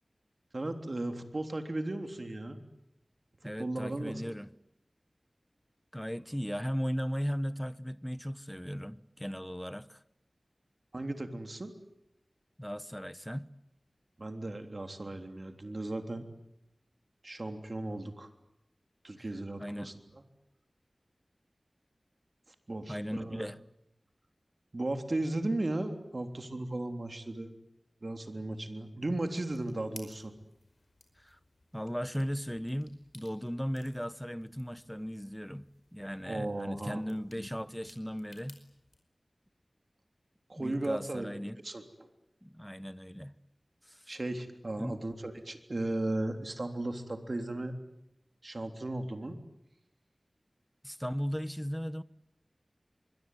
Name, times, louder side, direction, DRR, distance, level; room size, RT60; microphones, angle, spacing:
voice 1, 0.5-2.6 3.4-4.2 10.9-11.7 14.2-16.3 17.2-18.3 19.0-19.9 22.7-23.5 24.7-27.5 28.0-30.4 36.3-37.0 40.5-41.3 41.6-42.1 44.1-47.8 48.4-49.4, right 2 dB, 55° right, 3.4 m, -36 dB
voice 2, 3.4-4.5 5.9-10.0 12.6-13.5 19.6-19.9 22.9-23.6 31.2-31.4 31.7-35.7 35.9-38.6 40.6-41.6 42.4-43.3 43.8-44.1 44.8-45.0 50.8-52.0, equal, 5° left, 1.2 m, -37 dB
sound 1, 29.3-39.0, left 2 dB, 65° left, 5.1 m, -59 dB
25.0 x 22.5 x 9.4 m
wide cardioid pair, 50°, 0 cm